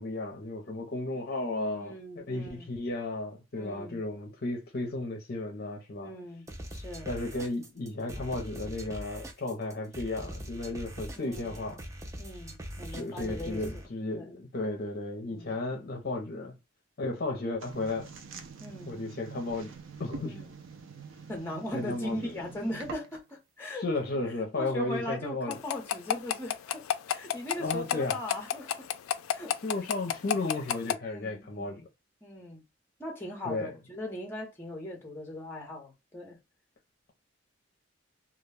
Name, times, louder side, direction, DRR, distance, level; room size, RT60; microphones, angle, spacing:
voice 1, 0.0-6.1 7.0-11.8 12.8-16.6 17.0-18.1 18.9-19.7 20.0-20.4 21.7-22.3 23.8-25.6 27.6-28.2 29.6-31.8 33.4-33.7, left 2 dB, 50° left, 0.6 m, -34 dB
voice 2, 1.8-2.7 3.5-4.0 6.0-7.1 11.1-11.6 12.2-13.8 14.1-14.4 15.2-15.6 18.6-18.9 20.2-20.6 21.3-23.8 24.5-28.9 29.3-29.6 31.1-31.8 32.2-32.6 33.0-36.4, left 1 dB, 10° left, 0.8 m, -39 dB
sound 1, 6.5-13.9, equal, 15° right, 0.4 m, -42 dB
sound 2, 17.6-23.3, right 5 dB, 70° right, 0.5 m, -45 dB
sound 3, 25.5-30.9, left 10 dB, 85° left, 0.3 m, -29 dB
2.3 x 2.2 x 3.2 m
head